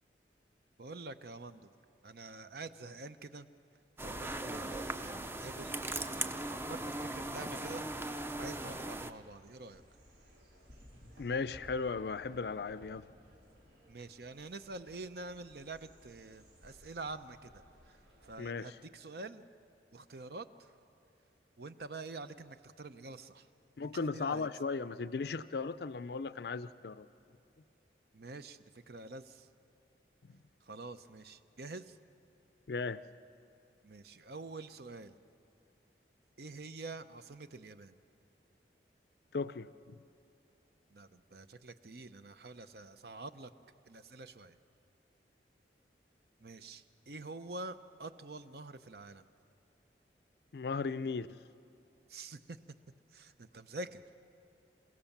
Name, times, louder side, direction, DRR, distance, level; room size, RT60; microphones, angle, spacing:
voice 1, 0.8-1.7 2.0-3.5 4.0-7.8 8.4-9.8 13.9-19.5 19.9-20.7 21.6-23.5 23.8-24.5 28.1-29.5 30.6-32.0 33.8-35.2 36.4-38.0 40.9-43.5 43.9-44.6 46.4-49.2 52.1-52.6 53.1-54.2, right 3 dB, 60° right, 11 dB, 0.8 m, -47 dB
sound 1, 4.0-9.1, right 2 dB, 15° right, 0.5 m, -39 dB
sound 2, 8.2-18.4, equal, 85° right, 4.5 m, -59 dB
voice 2, 11.2-13.1 18.4-18.7 23.8-27.1 32.7-33.0 39.3-40.0 50.5-51.4, left 4 dB, 65° left, 14 dB, 0.5 m, -36 dB
28.0 x 16.5 x 7.3 m, 2.7 s
head